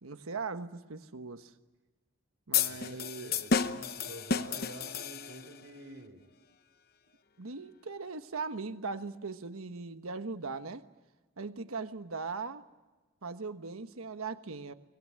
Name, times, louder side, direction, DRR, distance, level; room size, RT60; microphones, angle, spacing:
voice 1, 0.0-1.5 2.5-3.3 7.4-10.8 11.4-12.6 13.2-14.7, right 4 dB, 90° right, 10 dB, 1.2 m, -39 dB
sound 1, 2.5-5.6, left 6 dB, 45° left, 0.9 m, -31 dB
voice 2, 2.7-6.2, right 1 dB, 60° right, 5 dB, 4.0 m, -49 dB
23.5 x 20.5 x 9.6 m, 1.2 s
head